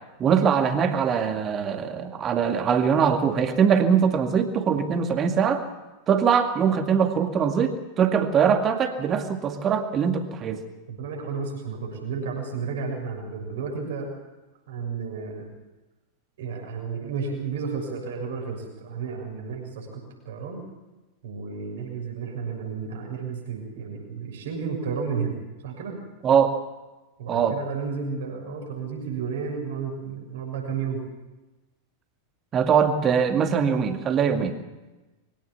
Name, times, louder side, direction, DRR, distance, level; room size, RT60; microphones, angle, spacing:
voice 1, 0.2-5.6 6.1-10.6 26.2-26.5 27.3-27.6 32.5-34.6, right 7 dB, 30° right, 6 dB, 2.2 m, -22 dB
voice 2, 10.9-14.1 14.7-15.5 16.4-20.6 21.2-25.4 25.6-25.9 27.2-31.0, right 5 dB, 60° right, 0 dB, 6.7 m, -32 dB
23.0 x 17.5 x 7.2 m, 1.1 s
figure-of-eight pair, 90°, 0 cm